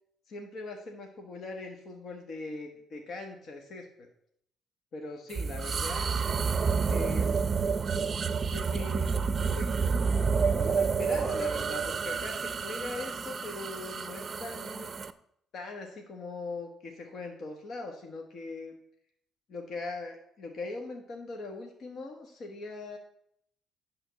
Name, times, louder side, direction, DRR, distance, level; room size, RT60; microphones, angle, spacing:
voice 1, 0.3-4.1 4.9-6.2 6.9-7.4 8.5-9.1 9.5-9.7 10.5-14.9 15.5-18.7 19.5-23.0, left 3 dB, 60° left, 3 dB, 1.4 m, -40 dB
sound 1, 5.3-15.1, right 5 dB, 35° right, 0.6 m, -29 dB
11.0 x 3.7 x 6.9 m, 0.71 s
cardioid pair, 100°, 0 cm